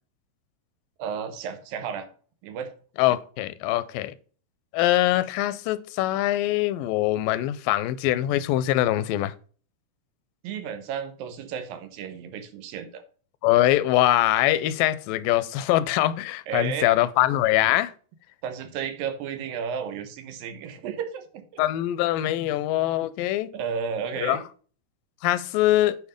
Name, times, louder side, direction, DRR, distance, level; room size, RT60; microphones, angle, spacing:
voice 1, 1.0-2.1 2.4-2.7 10.4-13.0 16.5-16.9 18.4-21.6 23.5-24.4, right 7 dB, 90° right, 2.9 m, -33 dB
voice 2, 3.0-4.1 4.7-9.3 13.4-17.9 21.6-23.5 24.2-24.4 25.2-26.0, left 14 dB, 85° left, 2.3 m, -23 dB
9.4 x 4.6 x 5.1 m
omnidirectional pair, 3.9 m